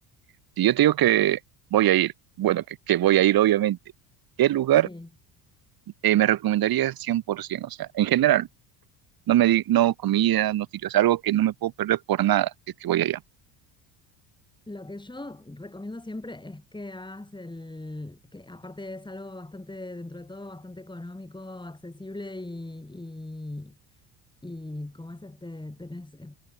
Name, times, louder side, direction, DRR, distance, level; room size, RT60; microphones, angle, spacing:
voice 1, 0.6-1.4 1.7-2.1 2.4-3.8 4.4-4.9 6.0-8.5 9.3-12.5 12.8-13.2, right 13 dB, 45° right, 1.3 m, -22 dB
voice 2, 14.7-23.8 24.4-26.4, left 2 dB, 10° left, 6.3 m, -39 dB
hypercardioid pair, 75°, 48 cm